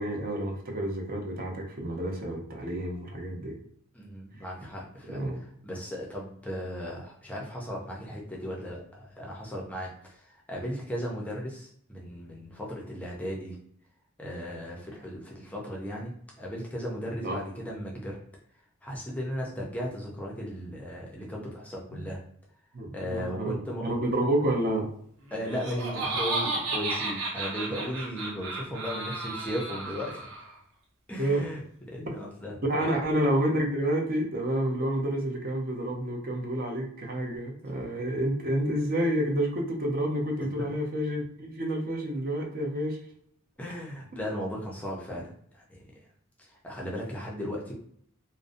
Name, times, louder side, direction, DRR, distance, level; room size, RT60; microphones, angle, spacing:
voice 1, 0.0-3.6 5.1-5.4 17.2-17.4 21.9-22.1 22.7-24.9 31.2-31.5 32.6-43.0, right 1 dB, 45° right, 0 dB, 0.6 m, -29 dB
voice 2, 3.9-5.2 5.6-13.6 14.2-16.1 16.4-18.2 18.8-22.2 22.9-23.8 25.3-30.3 31.1-31.6 31.9-33.0 40.4-40.7 43.6-45.9 46.4-47.7, equal, 5° left, -3 dB, 0.4 m, -36 dB
Laughter, 25.3-30.5, right 2 dB, 80° right, 0.7 m, -33 dB
2.5 x 2.0 x 2.5 m, 0.64 s
head